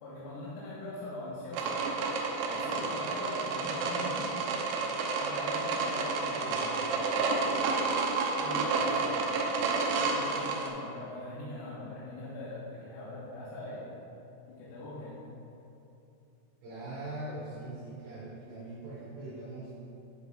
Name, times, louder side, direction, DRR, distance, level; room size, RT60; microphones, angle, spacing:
voice 1, 0.0-1.8 2.5-4.4 5.1-6.7 8.4-9.1 9.9-13.9 14.5-15.2, left 1 dB, 85° left, -9 dB, 4.0 m, -41 dB
sound 1, 1.5-10.7, right 4 dB, 90° right, 3.6 m, -30 dB
voice 2, 16.6-19.7, right 2 dB, 70° right, -8 dB, 3.6 m, -41 dB
12.5 x 7.7 x 2.5 m, 2.8 s
omnidirectional pair, 6.0 m